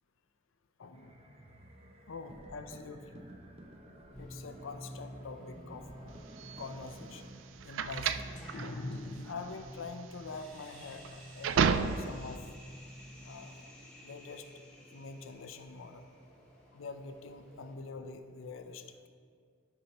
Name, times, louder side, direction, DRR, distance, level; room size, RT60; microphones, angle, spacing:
voice 1, 0.8-1.2 2.1-3.2 4.2-6.3 6.6-7.3 7.6-12.5 13.2-13.7 14.0-14.5 14.9-16.0 16.7-19.0, left 4 dB, 85° left, 8 dB, 0.5 m, -44 dB
sound 1, 0.9-7.3, right 1 dB, 30° right, 0.6 m, -53 dB
sound 2, 4.1-17.7, equal, 5° left, 1.2 m, -51 dB
sound 3, 6.4-12.3, right 6 dB, 75° right, 0.3 m, -32 dB
11.5 x 5.6 x 2.9 m, 2.2 s
head